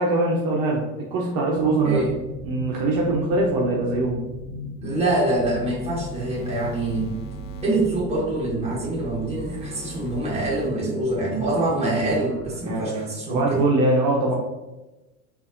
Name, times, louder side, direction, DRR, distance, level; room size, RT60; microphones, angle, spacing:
voice 1, 0.0-2.0 2.4-4.2 12.7-14.3, right 2 dB, 50° right, -2 dB, 0.7 m, -22 dB
sound 1, 1.5-12.6, left 2 dB, 75° left, 1.1 m, -39 dB
voice 2, 4.8-7.1 7.6-13.6, right 2 dB, 15° right, -4 dB, 1.3 m, -25 dB
sound 2, 5.2-10.7, right 3 dB, 35° left, 0.5 m, -40 dB
4.0 x 2.6 x 2.5 m, 1.0 s
hypercardioid pair, 95°, 43 cm